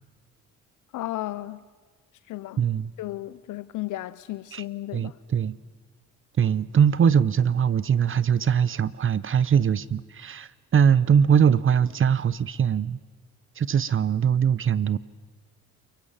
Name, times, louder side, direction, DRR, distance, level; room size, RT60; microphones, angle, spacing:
voice 1, 0.9-1.6 2.3-2.7 3.0-5.2, left 16 dB, 80° left, 0.7 m, -34 dB
voice 2, 2.6-2.9 4.5-4.6 4.9-5.6 6.4-13.0 13.6-15.0, right 7 dB, 45° right, 0.8 m, -22 dB
29.0 x 22.5 x 7.4 m
cardioid pair, 90°, 30 cm